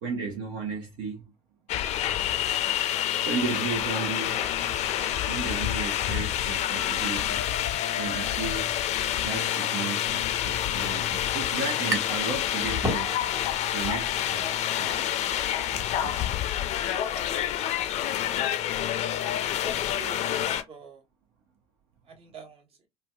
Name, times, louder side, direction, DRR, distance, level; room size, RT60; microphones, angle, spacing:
voice 1, 0.0-1.3 3.3-4.4 5.3-7.4 8.0-8.7 9.2-13.1 13.7-14.5 14.8-15.1 15.7-16.3, right 5 dB, 65° right, 1.0 m, -34 dB
sound 1, 1.7-20.6, left 11 dB, 50° left, 0.6 m, -28 dB
sound 2, 11.9-12.3 12.6-13.5, equal, 20° right, 1.6 m, -32 dB
voice 2, 19.6-21.0 22.1-22.9, right 4 dB, 40° right, 1.3 m, -46 dB
3.8 x 2.3 x 2.3 m
hypercardioid pair, 65°, 15 cm